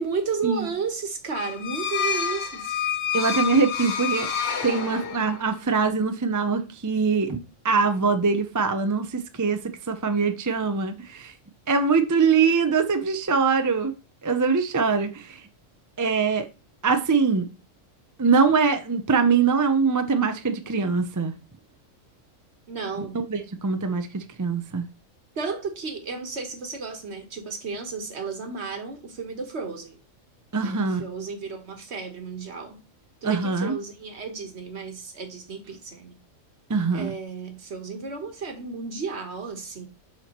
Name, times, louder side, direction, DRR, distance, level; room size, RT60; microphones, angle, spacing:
voice 1, 0.0-2.8 22.7-23.2 25.4-30.0 30.6-32.8 33.2-36.2 36.9-39.9, right 5 dB, 55° right, 1.5 m, -33 dB
sound 1, 1.3-5.5, left 7 dB, 55° left, 1.2 m, -28 dB
voice 2, 3.1-11.3 11.7-13.9 14.2-15.4 16.0-16.5 16.8-17.5 18.2-21.3 23.0-24.8 30.5-31.0 33.2-33.7 36.7-37.1, right 5 dB, 25° right, 0.4 m, -23 dB
6.9 x 5.9 x 3.0 m
omnidirectional pair, 1.4 m